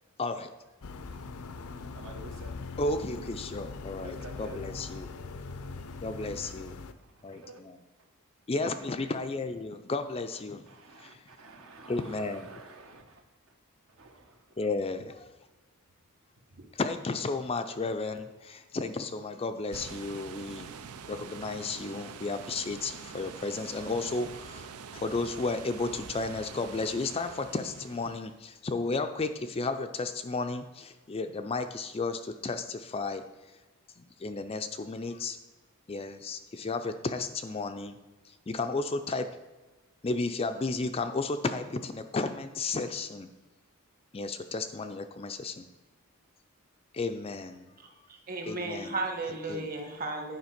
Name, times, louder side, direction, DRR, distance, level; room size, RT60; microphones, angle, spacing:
voice 1, 0.2-0.5 2.8-5.1 6.0-6.8 7.2-7.8 8.5-10.6 11.0-11.2 11.9-12.5 14.6-15.3 16.8-20.7 21.1-33.2 34.0-35.4 35.9-38.0 38.3-39.3 40.0-43.3 44.1-45.7 46.9-47.7 48.5-48.9 49.5-49.7, left 3 dB, 25° left, 8 dB, 0.4 m, -33 dB
sound 1, 0.8-6.9, left 4 dB, 75° left, 0.6 m, -41 dB
voice 2, 1.8-2.8 3.4-5.8 6.8-7.6 10.3-13.6 13.9-14.7 16.5-16.6, right 2 dB, 65° right, 4 dB, 1.3 m, -51 dB
sound 2, 19.7-28.4, right 6 dB, 90° right, 0.6 m, -45 dB
voice 3, 48.3-50.4, right 2 dB, 40° right, 3 dB, 1.4 m, -34 dB
9.5 x 5.0 x 5.8 m, 1.2 s
head